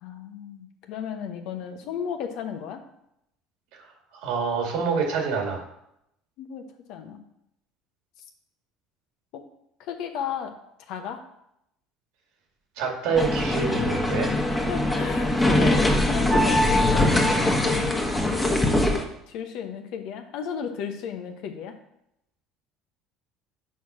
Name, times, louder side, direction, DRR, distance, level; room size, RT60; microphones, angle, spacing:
voice 1, 0.0-2.8 6.4-6.6 6.9-7.2 9.8-10.5 10.9-11.2 14.7-19.0 19.3-21.8, left 7 dB, 65° left, 5 dB, 1.0 m, -34 dB
voice 2, 4.2-5.6 12.8-14.3, right 5 dB, 70° right, 1 dB, 2.1 m, -26 dB
sound 1, 13.1-19.0, left 1 dB, 15° left, 1.3 m, -22 dB
5.8 x 4.8 x 6.0 m, 0.79 s
hypercardioid pair, 70°, 0 cm